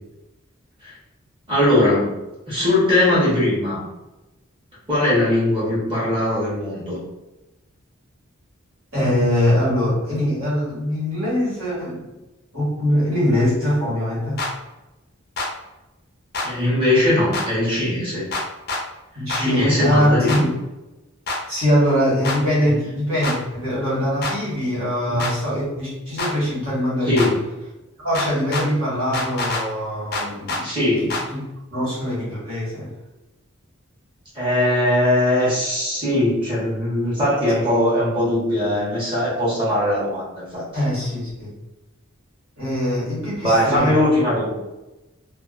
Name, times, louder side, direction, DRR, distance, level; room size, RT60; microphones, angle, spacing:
voice 1, 1.5-2.1 2.5-3.8 4.9-7.0 16.4-18.3 19.3-20.5 25.1-25.2 27.0-27.4 30.6-31.2 34.3-40.6 43.4-44.5, left 1 dB, 25° right, -8 dB, 1.0 m, -20 dB
voice 2, 8.9-12.1 12.5-14.4 19.1-20.5 21.5-27.3 28.0-30.6 31.0-31.4 31.7-32.9 40.7-41.5 42.6-44.0, equal, 75° right, -8 dB, 1.4 m, -22 dB
sound 1, 14.4-14.5 15.4-15.5 16.3-16.5 17.3-17.5 18.3-18.8 19.3-19.4 20.3-20.4 21.3-21.4 22.2-22.4 23.2-23.4 24.2-24.4 25.2-25.3 26.2-26.3 27.2-27.3 28.1-28.7 29.1-29.6 30.1-30.6 31.1-31.2, left 2 dB, 50° left, 0.5 m, -25 dB
2.5 x 2.3 x 2.4 m, 1.0 s
head